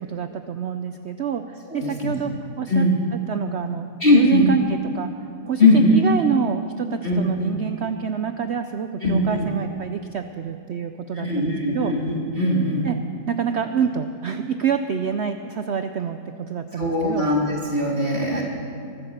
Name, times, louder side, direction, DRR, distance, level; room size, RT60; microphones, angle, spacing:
voice 1, 0.1-2.3 2.6-2.9 3.1-3.9 4.1-5.1 5.5-11.9 12.8-13.0 13.3-17.3 18.3-18.4, right 7 dB, 80° right, 8 dB, 0.6 m, -27 dB
voice 2, 1.7-2.1 2.7-2.9 4.0-4.5 5.6-6.0 7.0-7.5 9.0-9.5 11.1-12.9 16.7-18.4, left 2 dB, 35° left, -4 dB, 1.9 m, -20 dB
23.5 x 8.9 x 6.6 m, 2.5 s
omnidirectional pair, 1.8 m